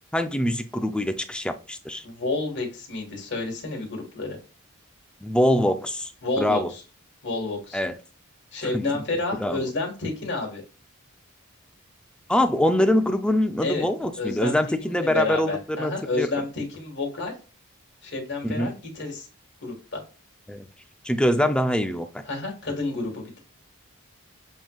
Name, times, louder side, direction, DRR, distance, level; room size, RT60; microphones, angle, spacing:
voice 1, 0.1-2.0 5.2-6.1 6.4-6.7 7.7-7.9 8.7-8.8 9.4-9.7 12.3-16.3 18.4-18.7 20.5-20.7 21.0-22.2, left 1 dB, 5° left, 0.4 m, -24 dB
voice 2, 2.0-4.4 6.2-6.6 7.2-7.8 8.5-10.6 13.6-13.9 14.2-17.3 18.0-19.3 19.6-20.0 22.3-23.4, left 2 dB, 55° left, 1.7 m, -30 dB
7.3 x 3.0 x 2.3 m
head